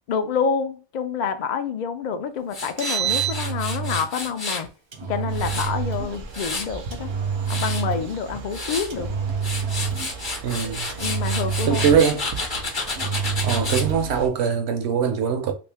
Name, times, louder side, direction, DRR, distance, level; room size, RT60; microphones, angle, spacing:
voice 1, 0.1-4.7 5.0-7.1 7.5-9.1 11.0-12.0, left 6 dB, 70° left, 0.4 m, -27 dB
Tools, 2.5-4.7 5.1-6.8 7.2-7.8 8.3-8.9 9.3-13.9, left 2 dB, 25° left, 0.6 m, -31 dB
Engine, 2.6-4.1 4.9-6.1 6.9-8.2 8.9-10.2 10.9-12.2 12.9-14.1, right 6 dB, 50° right, 0.3 m, -27 dB
sound 1, 5.3-14.3, right 5 dB, 85° right, 1.0 m, -38 dB
voice 2, 10.4-10.9 11.7-12.3 13.4-15.5, right 7 dB, 65° right, 0.8 m, -22 dB
3.1 x 2.5 x 3.4 m
omnidirectional pair, 1.3 m